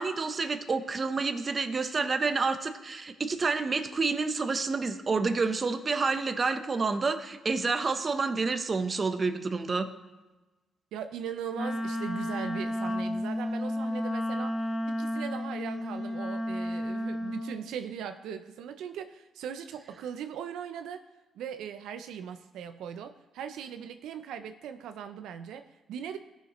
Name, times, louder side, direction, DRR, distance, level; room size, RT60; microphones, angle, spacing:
voice 1, 0.0-9.9, right 4 dB, 35° right, 9 dB, 0.8 m, -29 dB
voice 2, 10.9-21.0 21.3-26.2, right 8 dB, 85° right, 9 dB, 0.5 m, -39 dB
Wind instrument woodwind instrument, 11.5-17.6, left 1 dB, 20° left, 1.1 m, -32 dB
16.5 x 6.5 x 3.1 m, 1.2 s
cardioid pair, 90°, 0 cm